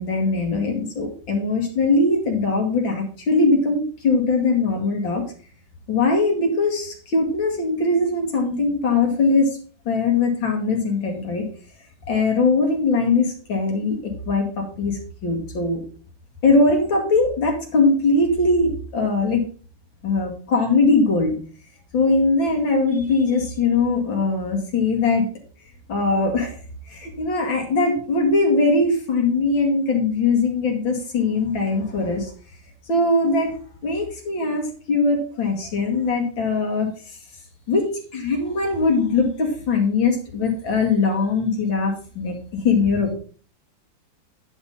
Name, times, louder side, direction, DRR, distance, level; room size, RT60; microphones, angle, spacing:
voice 1, 0.0-5.2 5.9-9.6 9.9-11.5 12.1-15.8 16.4-19.5 20.0-21.4 21.9-25.2 25.9-26.6 26.9-32.3 32.9-33.5 33.8-36.9 37.7-42.3 42.6-43.1, left 3 dB, 85° left, 1 dB, 2.9 m, -21 dB
10.0 x 4.5 x 5.4 m, 0.41 s
omnidirectional pair, 2.1 m